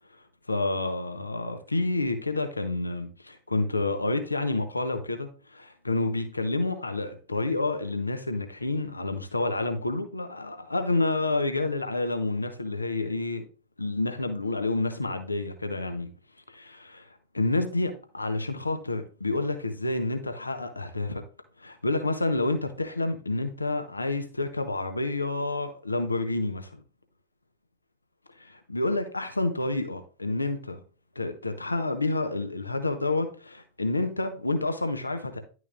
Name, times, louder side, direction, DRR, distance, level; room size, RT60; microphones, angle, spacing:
voice 1, 0.5-13.4 13.8-16.1 16.5-17.1 17.3-21.2 21.6-26.8 28.4-30.8 31.2-35.4, left 2 dB, 80° left, 0.9 m, -29 dB
11.0 x 6.2 x 2.5 m
figure-of-eight pair, 90°, 0 cm